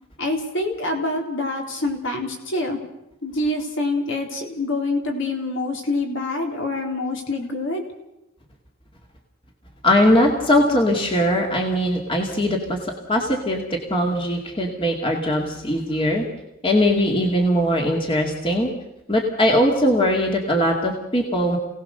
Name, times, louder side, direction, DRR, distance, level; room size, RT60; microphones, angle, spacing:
voice 1, 0.2-2.8 3.2-7.8, left 2 dB, 55° left, 2 dB, 4.0 m, -26 dB
voice 2, 9.8-16.2 16.6-18.7 19.1-21.6, left 1 dB, 25° left, 1 dB, 2.4 m, -20 dB
28.0 x 18.0 x 6.8 m, 0.91 s
head